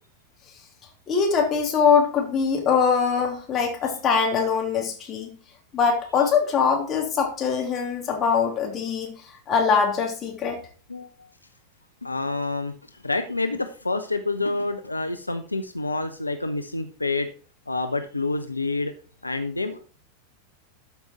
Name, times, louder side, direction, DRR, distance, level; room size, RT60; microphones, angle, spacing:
voice 1, 1.1-5.4 5.7-9.2 9.5-10.6, left 6 dB, 25° left, 1 dB, 2.9 m, -22 dB
voice 2, 12.0-12.7 13.0-17.3 17.7-18.9 19.2-19.8, left 3 dB, 85° left, 8 dB, 0.6 m, -28 dB
13.0 x 5.3 x 4.5 m, 0.39 s
figure-of-eight pair, 90°, 0 cm